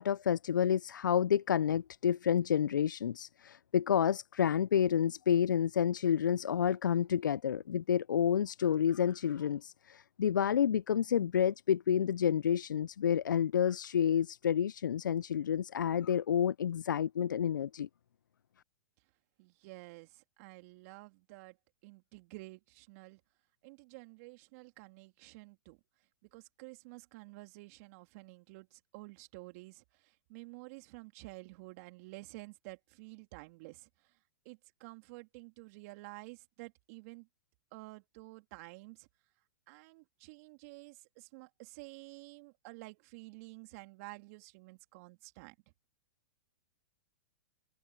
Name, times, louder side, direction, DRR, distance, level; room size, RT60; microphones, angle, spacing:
voice 1, 0.0-17.9, left 8 dB, 80° left, 0.5 m, -29 dB
voice 2, 19.4-21.6 21.8-23.2 23.6-25.8 26.3-34.1 34.4-37.3 37.7-39.1 39.7-45.5, right 25 dB, 50° right, 3.2 m, -51 dB
hypercardioid pair, 120°, 10 cm